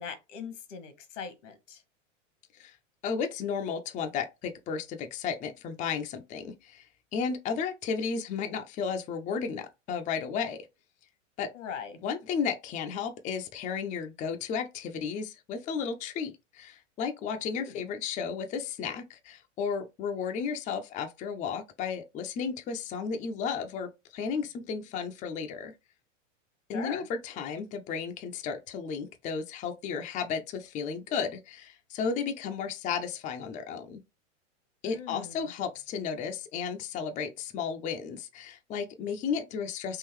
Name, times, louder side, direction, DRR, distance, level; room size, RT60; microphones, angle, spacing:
voice 1, 0.0-1.8 11.5-12.0 17.6-17.9 26.7-27.1 34.8-35.5, left 7 dB, 80° left, 1.2 m, -41 dB
voice 2, 3.0-6.9 7.1-10.6 11.4-11.5 12.0-25.7 26.7-34.0 34.8-40.0, left 6 dB, 20° left, 0.4 m, -33 dB
3.7 x 2.5 x 3.1 m
hypercardioid pair, 110°, 37 cm